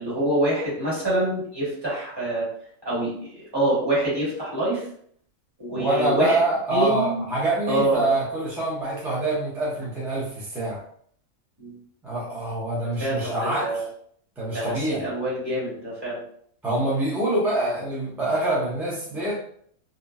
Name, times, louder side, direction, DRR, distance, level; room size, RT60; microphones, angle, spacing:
voice 1, 0.0-2.5 2.8-4.9 5.6-6.4 6.7-7.2 7.7-8.0 11.6-11.8 13.0-13.9 14.5-16.2, right 1 dB, 20° right, -8 dB, 1.3 m, -26 dB
voice 2, 5.7-10.8 12.0-13.7 14.4-15.0 16.6-19.4, right 2 dB, ahead, -6 dB, 0.5 m, -25 dB
2.7 x 2.6 x 2.3 m, 0.62 s
omnidirectional pair, 1.5 m